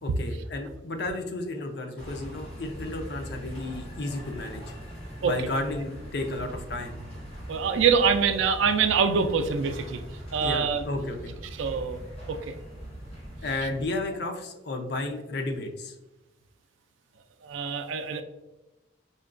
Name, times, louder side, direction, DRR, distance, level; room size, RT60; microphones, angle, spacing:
voice 1, 0.0-4.6 5.2-7.0 10.4-11.3 13.4-15.9, left 2 dB, 55° left, 4 dB, 0.5 m, -33 dB
sound 1, 2.0-13.9, equal, 30° left, 1.4 m, -41 dB
voice 2, 7.5-10.0 10.3-10.8 11.6-12.0 12.3-12.5 17.4-18.2, right 6 dB, 80° right, 8 dB, 0.3 m, -24 dB
5.1 x 2.2 x 2.4 m, 0.99 s
head